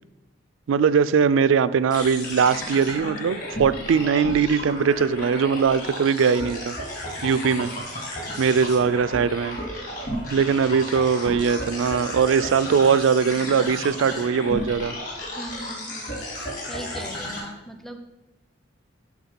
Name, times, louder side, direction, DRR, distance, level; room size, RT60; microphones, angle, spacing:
voice 1, 0.7-6.8 7.2-7.7 8.4-9.6 10.3-14.9, right 6 dB, 85° right, 16 dB, 0.3 m, -21 dB
sound 1, 1.9-17.4, equal, 45° left, 2.6 m, -33 dB
voice 2, 10.1-10.5 15.3-18.0, equal, ahead, 6 dB, 0.6 m, -40 dB
10.5 x 3.6 x 5.7 m, 1.0 s
head